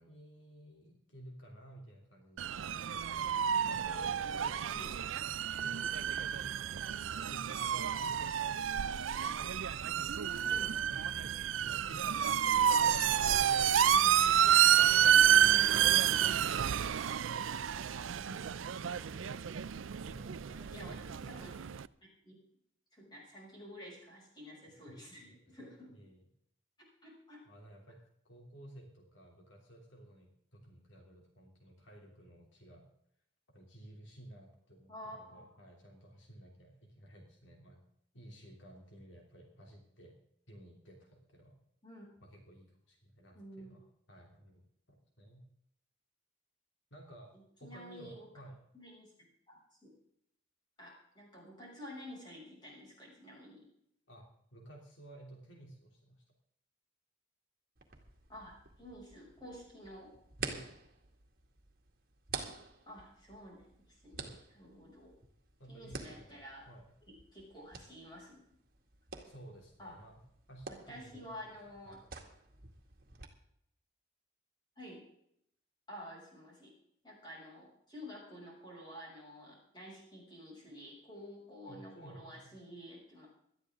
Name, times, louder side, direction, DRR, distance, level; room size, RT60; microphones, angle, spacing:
voice 1, 0.0-2.8 3.6-5.1 5.6-8.9 9.9-10.2 10.8-14.0 20.0-21.0 24.9-26.3 27.4-28.0 28.2-32.8 33.5-37.8 38.1-40.1 40.5-41.6 42.2-45.4 46.9-47.3 47.6-48.6 54.1-56.2 60.4-60.9 64.2-64.4 65.6-66.8 69.2-70.2 70.5-71.6 71.8-72.1 81.7-82.6, right 1 dB, 75° left, 1 dB, 3.1 m, -55 dB
sound 1, 2.4-21.9, right 9 dB, 90° right, 0.5 m, -29 dB
voice 2, 3.8-4.9 10.4-10.8 15.5-16.1 18.2-19.4 20.5-21.5 22.2-22.3 22.9-25.9 27.0-27.4 34.9-35.5 41.8-42.1 43.3-43.7 47.6-48.3 48.7-49.1 49.5-49.9 50.8-53.7 58.3-60.1 62.8-64.2 64.5-65.1 65.7-66.6 67.0-68.4 69.8-70.0 70.7-72.0 74.8-75.0 75.9-76.7 77.0-83.3, equal, 20° left, -4 dB, 6.7 m, -50 dB
sound 2, 57.8-73.3, right 4 dB, 50° right, 2.1 m, -49 dB
18.5 x 13.0 x 3.7 m, 0.72 s
head